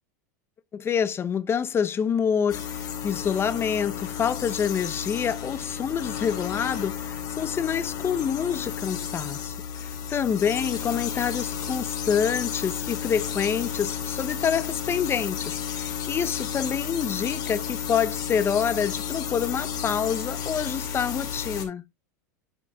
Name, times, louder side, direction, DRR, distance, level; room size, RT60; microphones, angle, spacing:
voice 1, 0.7-21.8, left 7 dB, 25° left, 0.7 m, -27 dB
sound 1, 2.5-21.6, left 8 dB, 40° left, 2.4 m, -32 dB
11.5 x 5.0 x 2.3 m
hypercardioid pair, 105°, 10 cm